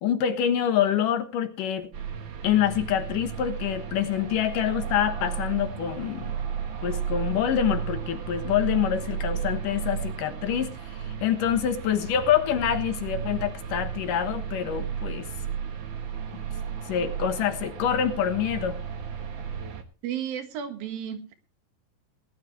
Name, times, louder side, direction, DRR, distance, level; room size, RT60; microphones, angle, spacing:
voice 1, 0.0-1.9 2.4-6.3 6.8-15.3 16.8-18.8, left 9 dB, 70° left, 8 dB, 2.8 m, -26 dB
sound 1, 1.9-19.8, right 8 dB, 55° right, 1.4 m, -34 dB
voice 2, 20.0-21.3, right 9 dB, 80° right, 7 dB, 3.4 m, -33 dB
19.0 x 12.0 x 3.3 m, 0.33 s
omnidirectional pair, 4.1 m